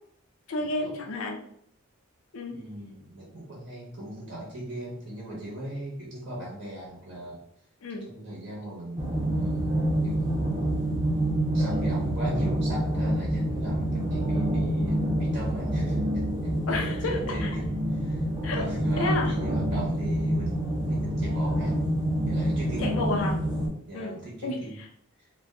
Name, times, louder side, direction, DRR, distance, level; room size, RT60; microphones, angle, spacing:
voice 1, 0.5-1.4 2.3-2.5 7.8-8.1 16.7-17.6 18.4-18.6 19.0-19.3 22.8-23.4 23.9-24.1 24.4-24.9, left 2 dB, 70° left, 2 dB, 0.5 m, -31 dB
voice 2, 2.5-7.4 8.1-10.5 11.5-16.0 16.7-18.2 18.5-21.9 22.2-22.9 23.9-24.8 25.2-25.3, right 1 dB, 50° right, -5 dB, 0.8 m, -39 dB
sound 1, 9.0-23.7, right 1 dB, 20° right, 0.5 m, -27 dB
2.3 x 2.2 x 3.5 m, 0.71 s
head